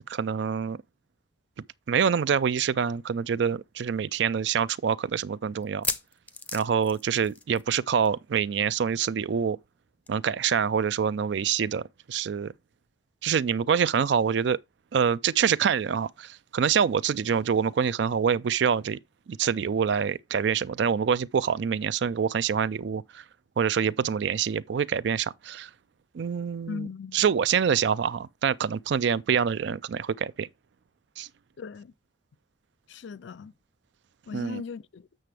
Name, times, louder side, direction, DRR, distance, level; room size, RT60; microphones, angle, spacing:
voice 1, 0.1-0.8 1.9-5.9 6.5-9.6 10.1-12.5 13.2-14.6 14.9-19.0 19.3-23.2 23.6-25.7 26.1-26.9 27.1-30.5 31.2-31.3 34.3-34.6, right 7 dB, 65° right, 0.4 m, -26 dB
sound 1, 3.0-3.1 3.4-3.5 4.1-4.2 5.6-7.8 8.0-8.2 8.5-8.6 10.1-10.2, left 3 dB, 10° left, 0.5 m, -35 dB
voice 2, 26.7-27.2 31.6-31.9 32.9-33.5 34.3-35.1, left 5 dB, 70° left, 0.4 m, -38 dB
7.7 x 6.6 x 3.3 m
head